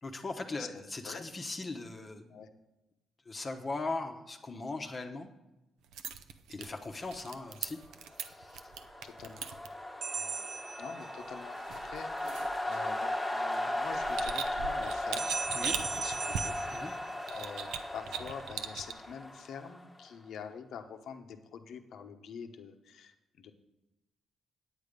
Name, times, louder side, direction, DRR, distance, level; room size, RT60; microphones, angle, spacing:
voice 1, 0.0-2.4 3.3-5.3 6.5-7.8 8.2-8.6 15.5-15.7 16.7-16.9, left 3 dB, 30° left, 4 dB, 1.0 m, -39 dB
voice 2, 0.6-1.2 2.3-2.5 8.5-8.7 9.0-9.4 10.1-10.5 10.8-11.6 11.8-17.0 17.3-17.7 17.9-23.5, left 7 dB, 70° left, 7 dB, 1.0 m, -46 dB
sound 1, 5.8-9.7 11.5-13.1 13.7-16.8 17.3-18.9, right 7 dB, 85° right, 0.6 m, -41 dB
sound 2, 8.1-20.1, left 1 dB, 5° left, 1.4 m, -37 dB
sound 3, 10.0-11.5 15.2-17.7, right 4 dB, 50° right, 0.8 m, -38 dB
9.0 x 8.5 x 5.2 m, 0.99 s
cardioid pair, 90°, 0 cm